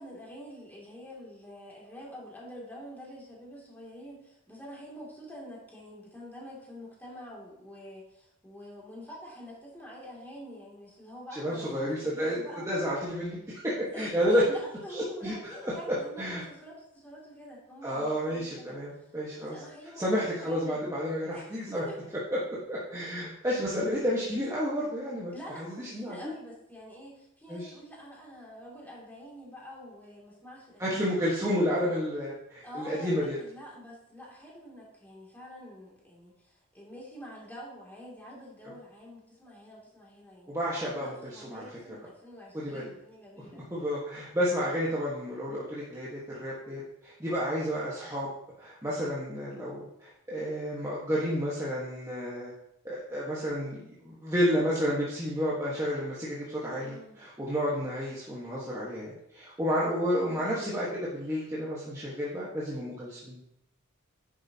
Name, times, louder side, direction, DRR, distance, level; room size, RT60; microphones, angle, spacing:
voice 1, 0.0-12.7 13.9-19.1 19.4-20.8 21.3-22.1 25.3-31.7 32.6-40.5 40.9-43.6 56.7-57.2 60.1-60.7, equal, 10° left, -4 dB, 2.6 m, -47 dB
voice 2, 11.3-14.4 14.9-16.4 17.8-19.6 20.0-21.8 22.3-22.4 22.7-25.3 25.6-26.3 27.5-27.7 30.8-33.4 40.5-41.7 42.5-42.9 43.5-48.3 48.6-52.5 52.8-63.4, equal, 15° right, -7 dB, 1.4 m, -31 dB
10.5 x 7.0 x 2.9 m, 0.80 s
head